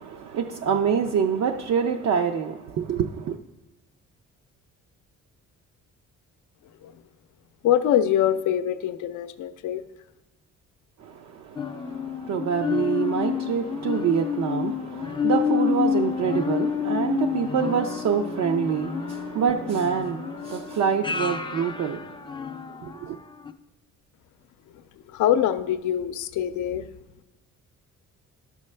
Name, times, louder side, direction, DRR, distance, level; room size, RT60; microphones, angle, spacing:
voice 1, 0.0-3.4 11.0-22.2 22.8-23.2, right 7 dB, 60° right, 0.5 m, -26 dB
voice 2, 7.6-9.8 25.1-26.9, left 10 dB, 80° left, 0.5 m, -24 dB
sound 1, 11.6-23.0 23.5-23.6, left 7 dB, 15° left, 0.4 m, -29 dB
11.0 x 6.3 x 3.2 m
cardioid pair, 90°, 30 cm